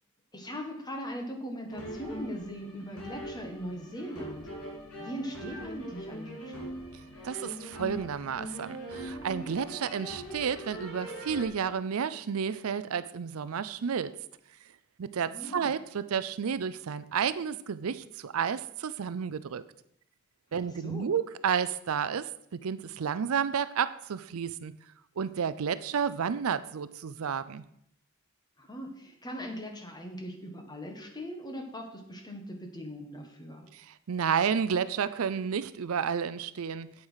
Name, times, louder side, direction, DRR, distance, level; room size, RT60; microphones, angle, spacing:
voice 1, 0.3-4.5 5.0-6.7 15.3-15.7 20.8-21.1 28.6-33.7, equal, 20° left, 3 dB, 1.7 m, -40 dB
sound 1, 1.7-11.5, equal, 70° left, 3.5 m, -41 dB
voice 2, 7.2-14.1 15.0-19.6 20.5-24.7 25.2-27.6 33.7-36.9, right 7 dB, 70° right, 15 dB, 0.5 m, -31 dB
8.7 x 7.9 x 5.6 m, 0.74 s
head